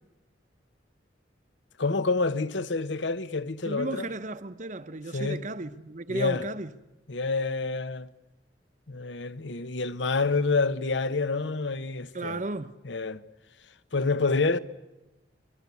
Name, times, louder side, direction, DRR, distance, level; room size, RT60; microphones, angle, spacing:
voice 1, 1.8-4.1 5.1-5.4 6.1-6.4 7.1-8.1 8.9-12.4 12.8-13.2 13.9-14.6, left 3 dB, 80° left, 1.0 m, -28 dB
voice 2, 3.6-6.7 12.1-12.7, right 2 dB, 40° right, 0.8 m, -34 dB
25.5 x 23.0 x 8.3 m
head